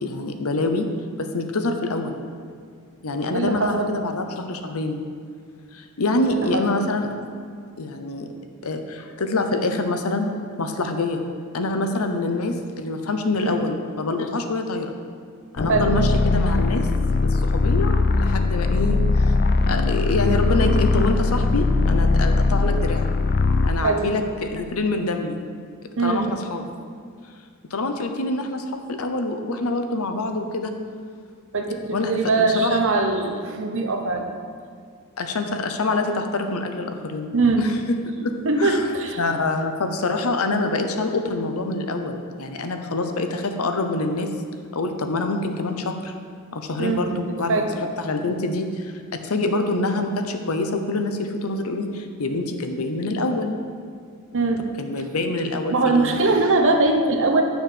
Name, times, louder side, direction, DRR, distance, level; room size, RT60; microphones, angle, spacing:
voice 1, 0.0-0.9 1.2-2.2 3.0-5.0 5.7-7.2 7.8-8.3 8.6-10.3 10.6-11.2 11.5-14.9 15.5-16.9 17.2-19.4 19.7-23.1 23.6-25.4 26.0-26.6 27.7-30.7 31.9-32.1 32.4-32.8 35.2-37.3 37.6-38.3 38.6-38.8 39.2-44.3 44.7-46.1 46.5-47.6 48.0-53.5 54.8-56.1, left 2 dB, 75° left, 6 dB, 0.8 m, -26 dB
voice 2, 3.3-3.9 6.3-6.6 13.4-13.6 15.7-16.0 23.8-24.1 26.0-26.3 31.5-34.2 37.3-37.7 38.4-39.2 46.8-47.1 47.5-47.8 54.3-54.6 55.7-57.4, right 3 dB, 60° right, 4 dB, 0.9 m, -21 dB
sound 1, 15.6-23.8, left 3 dB, 45° left, 0.4 m, -20 dB
8.8 x 6.3 x 5.0 m, 2.1 s
head